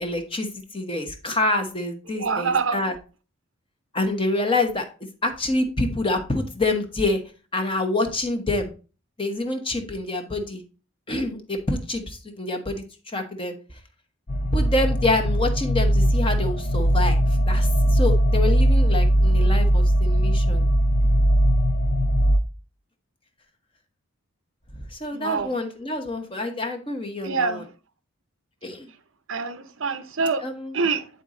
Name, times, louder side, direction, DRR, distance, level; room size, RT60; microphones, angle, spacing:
voice 1, 0.0-2.9 3.9-4.8 5.2-7.2 7.5-8.7 9.2-10.6 11.1-13.5 14.5-20.6 24.9-27.6 28.6-28.9 30.4-30.8, left 2 dB, 25° left, 1.0 m, -27 dB
voice 2, 2.1-2.9 25.1-25.5 27.2-27.7 29.3-30.4 30.7-31.1, right 5 dB, 60° right, 0.6 m, -25 dB
sound 1, 14.3-22.4, equal, 40° left, 0.6 m, -19 dB
9.2 x 4.1 x 3.7 m
head